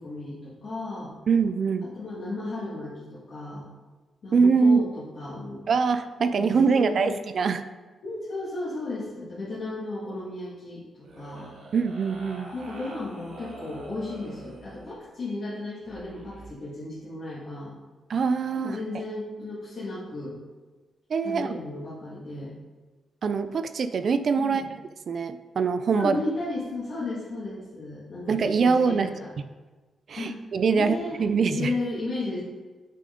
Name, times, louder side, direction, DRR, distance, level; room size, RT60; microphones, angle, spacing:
voice 1, 0.0-1.1 1.8-3.6 4.2-5.6 6.3-7.2 8.0-11.5 12.5-17.7 18.6-20.4 21.2-22.5 24.4-24.7 25.9-29.3 30.2-30.4 30.7-31.2 31.5-32.4, left 2 dB, 45° left, -9 dB, 1.9 m, -34 dB
voice 2, 1.3-1.9 4.3-4.8 5.7-7.6 11.7-12.5 18.1-18.8 21.1-21.6 23.2-24.6 25.1-26.2 28.3-29.1 30.1-31.7, right 5 dB, 45° right, 11 dB, 0.3 m, -23 dB
sound 1, 11.0-15.0 15.8-16.5, right 2 dB, 75° right, 2.1 m, -45 dB
8.4 x 5.6 x 3.8 m, 1.2 s
wide cardioid pair, 170°, 0 cm